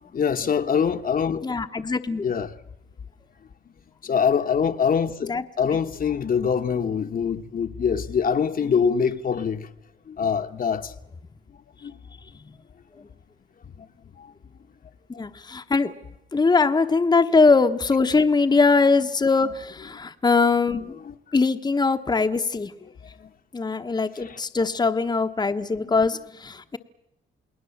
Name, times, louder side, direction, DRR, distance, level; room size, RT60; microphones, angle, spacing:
voice 1, 0.0-1.4 2.2-2.5 4.0-9.7 10.1-10.9 11.8-12.0 13.8-13.9 14.2-14.3 15.1-15.2 19.4-19.5 21.0-21.1 23.2-23.3 24.2-24.4, left 6 dB, 45° left, 1.2 m, -24 dB
voice 2, 1.4-2.3 5.3-5.4 15.2-15.9 16.3-20.9 21.3-22.7 23.5-26.8, left 4 dB, 20° left, 1.1 m, -21 dB
29.0 x 19.5 x 7.2 m
cardioid pair, 90°, 20 cm